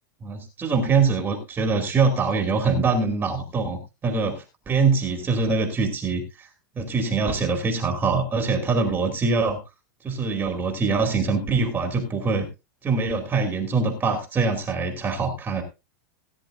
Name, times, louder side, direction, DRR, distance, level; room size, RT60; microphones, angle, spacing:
voice 1, 0.2-6.5 6.8-9.6 10.0-12.5 12.8-15.6, right 4 dB, 15° right, 4 dB, 2.5 m, -23 dB
18.0 x 10.0 x 2.6 m, 0.26 s
supercardioid pair, 140°, 11 cm